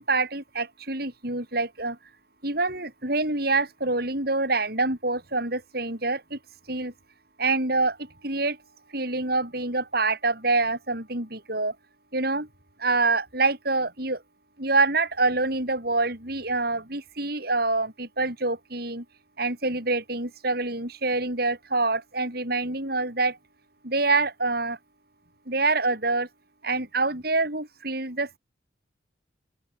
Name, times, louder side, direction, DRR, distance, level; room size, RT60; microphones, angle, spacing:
voice 1, 0.0-2.0 2.4-6.4 6.7-6.9 7.4-8.6 8.9-11.7 12.1-12.5 12.8-14.2 14.6-19.0 19.4-23.4 23.8-24.8 25.5-26.3 26.6-28.4, right 3 dB, 55° right, 7.8 m, -26 dB
open air
head